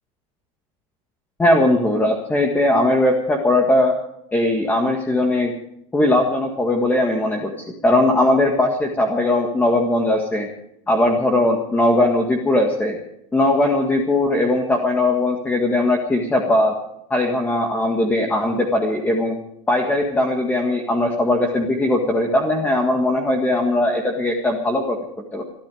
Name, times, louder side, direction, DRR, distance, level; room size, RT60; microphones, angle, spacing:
voice 1, 1.4-3.9 4.3-5.5 5.9-7.5 7.8-10.5 10.9-13.0 13.3-16.7 17.1-19.4 19.7-25.0 25.3-25.4, left 1 dB, 10° left, 3 dB, 1.8 m, -19 dB
22.5 x 12.5 x 5.0 m, 0.78 s
cardioid pair, 150°, 16 cm